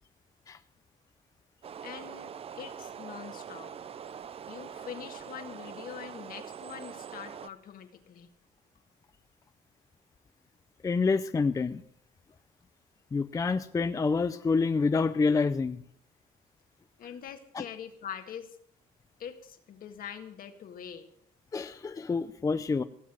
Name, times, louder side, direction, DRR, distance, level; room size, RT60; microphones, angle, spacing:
sound 1, 1.6-7.5, right 8 dB, 35° right, 0.5 m, -43 dB
voice 1, 1.8-3.7 4.5-8.3 17.0-18.6 19.2-21.1, left 8 dB, 55° left, 7 dB, 1.7 m, -44 dB
voice 2, 10.8-11.8 13.1-15.8 17.5-17.6 21.5-22.8, left 4 dB, 20° left, 11 dB, 0.5 m, -27 dB
16.5 x 7.4 x 7.4 m, 0.69 s
cardioid pair, 110°, 17 cm